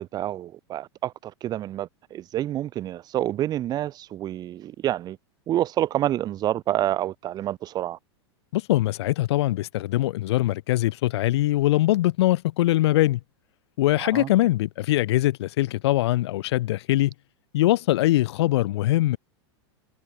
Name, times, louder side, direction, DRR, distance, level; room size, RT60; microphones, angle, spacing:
voice 1, 0.0-5.2 5.5-8.0 14.0-14.3, right 12 dB, 30° right, 0.5 m, -28 dB
voice 2, 8.5-13.2 13.8-17.1 17.5-19.2, left 16 dB, 70° left, 0.6 m, -22 dB
hypercardioid pair, 115°, 14 cm